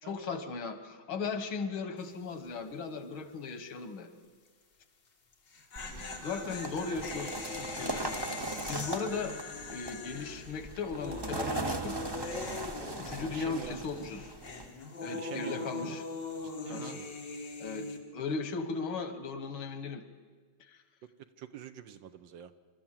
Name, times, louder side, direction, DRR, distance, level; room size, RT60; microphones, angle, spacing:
voice 1, 0.0-4.1 6.2-8.1 8.7-9.4 9.7-12.0 13.0-14.3 15.0-16.0 16.7-17.0 17.6-20.0 20.7-20.8, left 4 dB, 90° left, 9 dB, 2.1 m, -37 dB
sound 1, 2.0-2.3 2.6-2.7 5.3-13.7 14.0-18.0, left 3 dB, 60° left, 2.5 m, -41 dB
sound 2, 5.8-14.7, right 2 dB, 35° right, 0.3 m, -39 dB
voice 2, 13.2-13.8 15.1-16.0 16.4-17.0 21.4-22.5, right 9 dB, 70° right, 11 dB, 1.5 m, -45 dB
27.0 x 13.0 x 7.5 m, 1.5 s
omnidirectional pair, 2.2 m